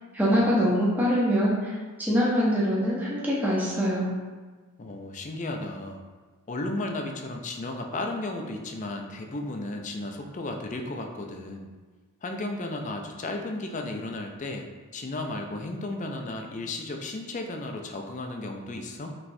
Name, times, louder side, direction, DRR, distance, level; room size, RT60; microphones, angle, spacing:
voice 1, 0.1-1.7 2.0-4.1, equal, 10° right, -6 dB, 0.7 m, -23 dB
voice 2, 4.8-6.0 6.5-11.7 12.2-14.7 14.9-19.1, left 2 dB, 35° left, 3 dB, 0.4 m, -34 dB
5.6 x 3.1 x 2.6 m, 1.4 s
head